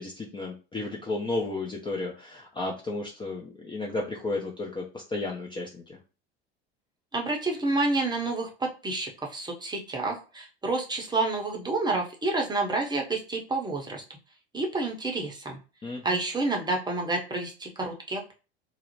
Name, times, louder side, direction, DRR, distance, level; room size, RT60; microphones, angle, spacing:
voice 1, 0.0-6.0 15.8-16.2, left 2 dB, 15° left, -1 dB, 0.4 m, -33 dB
voice 2, 7.1-14.0 14.5-15.6 16.0-18.3, right 2 dB, 15° right, 1 dB, 0.7 m, -29 dB
2.4 x 2.0 x 2.9 m, 0.32 s
hypercardioid pair, 80°, 31 cm